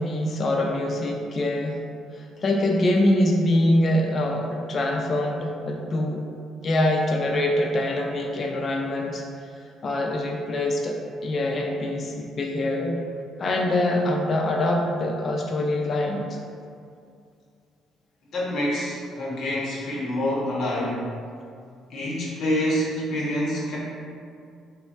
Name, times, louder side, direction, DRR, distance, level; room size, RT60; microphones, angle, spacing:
voice 1, 0.0-1.8 2.1-6.2 6.6-13.0 13.4-16.4, left 1 dB, 40° left, 1 dB, 0.3 m, -24 dB
voice 2, 18.3-21.0 21.9-23.8, left 1 dB, 55° left, -5 dB, 0.9 m, -26 dB
3.1 x 2.2 x 4.2 m, 2.3 s
cardioid pair, 120°, 0 cm